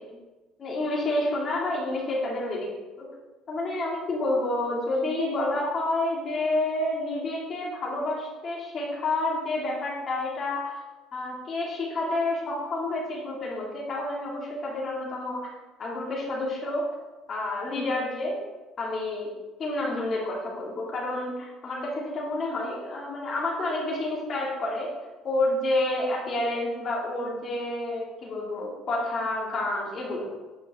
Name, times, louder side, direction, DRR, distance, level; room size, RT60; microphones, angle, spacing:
voice 1, 0.6-2.7 3.0-3.1 3.5-10.8 11.1-15.4 15.8-16.9 17.3-18.4 18.8-19.3 19.6-24.9 25.2-30.3, left 2 dB, 40° left, -3 dB, 2.6 m, -29 dB
8.9 x 5.8 x 3.7 m, 1.2 s
cardioid pair, 110°, 0 cm